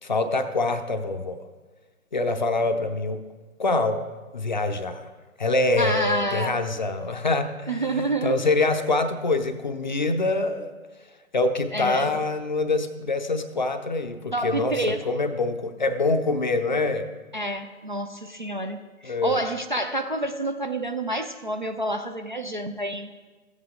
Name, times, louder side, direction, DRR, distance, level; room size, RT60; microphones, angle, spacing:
voice 1, 0.0-1.4 2.1-3.2 3.6-4.0 4.3-5.1 5.4-10.7 11.3-17.1 19.0-19.4, left 2 dB, 35° left, 7 dB, 0.5 m, -25 dB
voice 2, 5.8-6.6 7.7-8.3 8.6-8.7 11.7-12.1 14.3-15.0 17.3-23.1, right 1 dB, 35° right, 6 dB, 0.4 m, -28 dB
14.0 x 8.0 x 3.7 m, 1.3 s
figure-of-eight pair, 140°, 43 cm